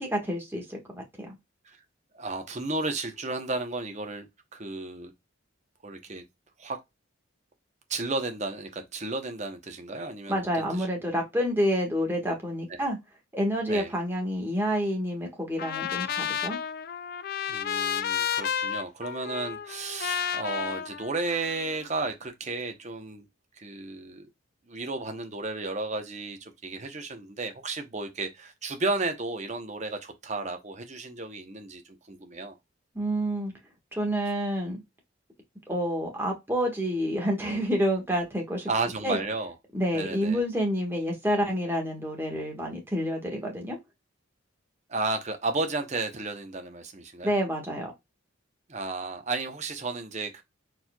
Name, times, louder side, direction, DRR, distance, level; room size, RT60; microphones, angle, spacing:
voice 1, 0.0-1.3 10.3-13.0 13.3-16.6 32.9-33.5 33.9-34.8 35.7-38.7 39.0-39.2 39.7-43.8 47.2-47.9, equal, 10° right, 1.4 m, -28 dB
voice 2, 2.1-4.3 4.5-5.1 5.8-6.2 6.6-6.8 7.9-10.9 12.7-12.8 13.7-13.9 17.5-23.3 23.6-24.3 24.7-32.5 38.7-39.5 39.9-40.4 44.9-47.3 48.7-50.4, right 3 dB, 35° right, 0.8 m, -33 dB
Trumpet, 15.6-21.8, left 8 dB, 45° left, 0.3 m, -32 dB
4.5 x 4.2 x 2.3 m
head